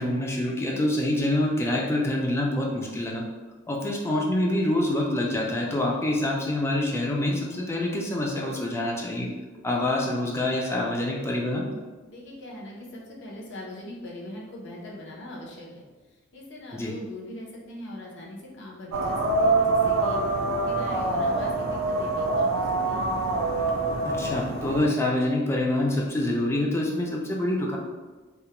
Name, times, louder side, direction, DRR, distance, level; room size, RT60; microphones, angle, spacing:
voice 1, 0.0-3.2 3.7-9.3 9.6-11.7 16.7-16.9 24.0-27.8, left 1 dB, 15° left, -2 dB, 0.3 m, -26 dB
voice 2, 12.1-15.9 16.3-20.2 20.6-23.1, left 1 dB, 60° left, -3 dB, 0.6 m, -41 dB
sound 1, 18.9-24.9, right 2 dB, 85° right, 0.4 m, -25 dB
2.3 x 2.0 x 2.9 m, 1.3 s
head